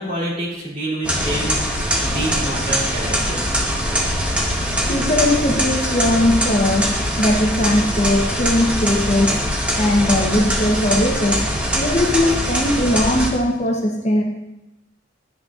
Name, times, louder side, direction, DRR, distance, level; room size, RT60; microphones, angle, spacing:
voice 1, 0.0-3.6, right 1 dB, 40° right, -6 dB, 2.5 m, -27 dB
sound 1, 1.0-13.3, equal, 5° right, 1.0 m, -22 dB
voice 2, 4.9-6.9 7.2-9.4 9.8-11.4 11.7-14.2, left 1 dB, 35° left, 1 dB, 0.8 m, -19 dB
10.0 x 6.4 x 2.4 m, 0.93 s
head